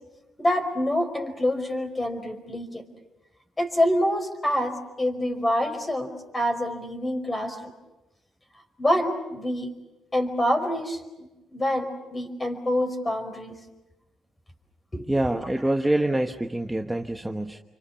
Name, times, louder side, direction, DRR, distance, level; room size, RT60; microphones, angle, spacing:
voice 1, 0.4-2.8 3.6-7.6 8.8-9.7 10.1-13.6 14.9-15.2, left 1 dB, 20° left, 6 dB, 5.0 m, -26 dB
voice 2, 15.1-17.6, right 1 dB, 10° right, 4 dB, 1.2 m, -25 dB
28.5 x 25.0 x 7.2 m, 1.0 s
cardioid pair, 90°, 0 cm